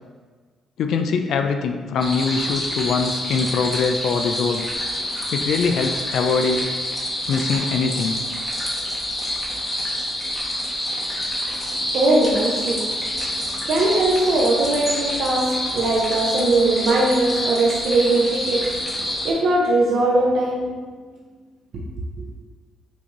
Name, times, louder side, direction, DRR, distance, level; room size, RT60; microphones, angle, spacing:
voice 1, 0.8-4.6 5.3-6.7 7.3-8.2, left 5 dB, 75° left, 6 dB, 0.3 m, -22 dB
sound 1, 2.0-19.3, left 1 dB, 25° left, 1.1 m, -27 dB
voice 2, 11.9-13.1 13.6-20.7, right 2 dB, 65° right, -3 dB, 0.6 m, -20 dB
5.9 x 2.6 x 3.0 m, 1.5 s
cardioid pair, 90°, 0 cm